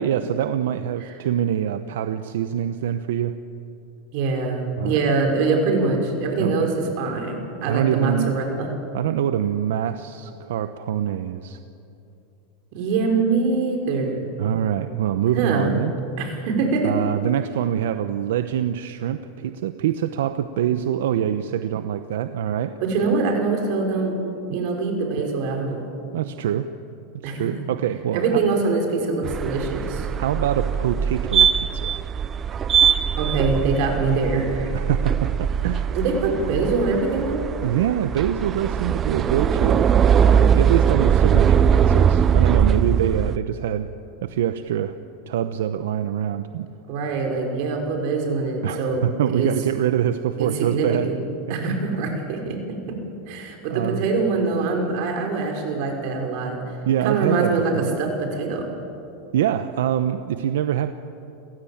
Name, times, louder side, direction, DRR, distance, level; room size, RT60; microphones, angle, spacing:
voice 1, 0.0-3.4 4.8-5.0 6.4-6.7 7.7-8.3 8.9-11.6 14.4-15.9 16.8-22.7 26.1-26.7 27.3-28.4 30.2-32.0 34.7-35.9 37.6-39.9 40.2-43.9 44.2-44.9 45.3-46.7 48.6-51.1 51.5-51.6 53.7-54.1 56.9-57.9 59.3-60.9, right 10 dB, 85° right, 10 dB, 0.9 m, -24 dB
voice 2, 4.1-8.7 12.7-14.3 15.3-15.7 16.2-16.9 22.8-24.2 24.5-25.9 27.2-27.5 28.1-30.1 33.2-34.7 35.9-37.4 46.9-49.1 49.3-49.5 50.4-51.2 51.5-52.6 52.9-53.0 53.3-56.6 57.0-58.7, right 4 dB, 55° right, 2 dB, 5.5 m, -24 dB
sound 1, 29.2-43.4, right 8 dB, 25° right, 0.5 m, -21 dB
29.5 x 16.0 x 8.8 m, 2.8 s
supercardioid pair, 155°, 0 cm